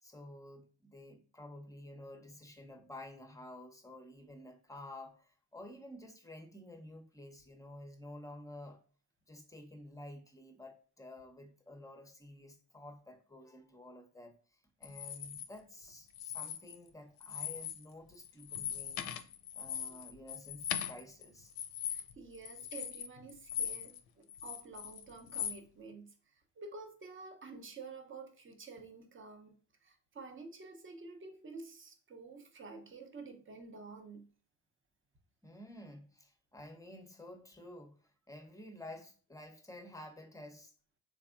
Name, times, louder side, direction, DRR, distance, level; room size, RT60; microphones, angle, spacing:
voice 1, 0.0-8.8 9.3-19.1 19.5-21.8 35.4-40.7, left 1 dB, 5° left, 0.8 m, -51 dB
sound 1, 14.8-15.5 16.1-16.9 17.2-17.8 18.1-24.0 24.3-25.6, left 9 dB, 50° left, 0.6 m, -40 dB
voice 2, 21.9-29.6 29.8-34.3, right 4 dB, 25° right, 0.8 m, -50 dB
3.4 x 3.3 x 2.4 m
hypercardioid pair, 55°, 48 cm